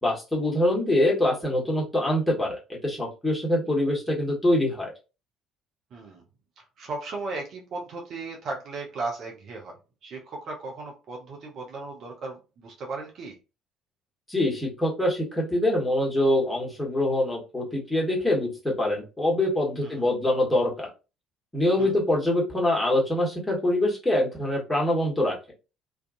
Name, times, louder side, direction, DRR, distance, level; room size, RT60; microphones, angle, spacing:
voice 1, 0.0-4.9 14.3-20.9 21.5-25.4, left 1 dB, 10° left, 1.2 m, -24 dB
voice 2, 5.9-6.2 6.6-9.7 10.0-13.4 19.8-20.0 21.8-21.9, right 3 dB, 45° right, 0.6 m, -36 dB
2.5 x 2.2 x 2.5 m
figure-of-eight pair, 55°, 0 cm